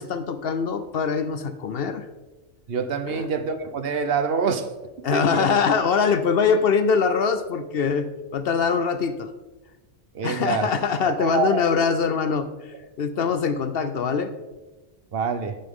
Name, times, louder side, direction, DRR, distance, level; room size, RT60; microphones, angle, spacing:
voice 1, 0.0-2.0 3.1-3.3 5.0-9.3 10.2-14.3, left 5 dB, 60° left, 11 dB, 0.8 m, -23 dB
voice 2, 2.7-4.7 5.1-5.5 10.1-10.7 11.2-11.6 15.1-15.6, right 5 dB, 60° right, 9 dB, 0.9 m, -25 dB
10.5 x 9.4 x 3.6 m, 1.1 s
omnidirectional pair, 1.2 m